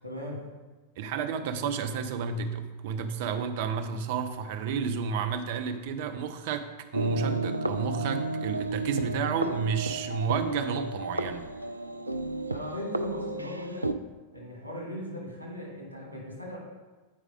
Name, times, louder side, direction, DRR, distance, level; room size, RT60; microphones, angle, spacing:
voice 1, 0.0-0.4 12.5-13.9 14.3-16.6, left 1 dB, 90° left, -2 dB, 2.3 m, -38 dB
voice 2, 1.0-11.5, right 6 dB, 50° right, 8 dB, 0.7 m, -31 dB
Lo-fi Music Guitar (loop version), 6.9-13.9, right 2 dB, 85° right, 0.3 m, -32 dB
8.5 x 4.9 x 4.9 m, 1.2 s
figure-of-eight pair, 90°, 0 cm